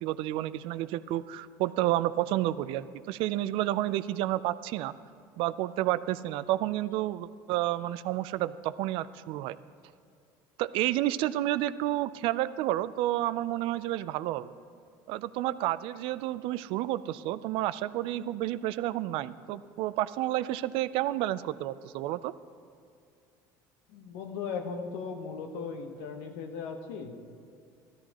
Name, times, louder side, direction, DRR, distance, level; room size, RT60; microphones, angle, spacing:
voice 1, 0.0-4.9 5.4-9.6 10.6-14.5 15.1-22.3, right 15 dB, 70° right, 15 dB, 0.4 m, -30 dB
voice 2, 23.9-27.2, left 5 dB, 75° left, 5 dB, 1.0 m, -37 dB
14.0 x 13.0 x 2.9 m, 2.4 s
supercardioid pair, 85°, 9 cm